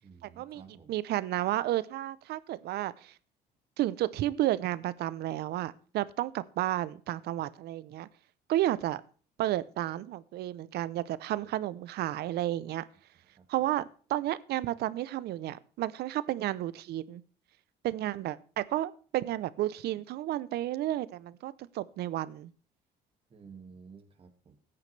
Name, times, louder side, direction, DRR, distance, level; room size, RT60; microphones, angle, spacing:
voice 1, 0.0-1.0 11.3-11.5 13.3-13.5 23.3-24.6, right 5 dB, 35° right, 4 dB, 2.1 m, -53 dB
voice 2, 0.9-3.1 3.8-8.1 8.5-9.0 9.4-12.8 13.5-17.2 17.8-22.5, right 14 dB, 70° right, 18 dB, 0.7 m, -32 dB
15.0 x 9.6 x 3.3 m, 0.41 s
cardioid pair, 110°, 17 cm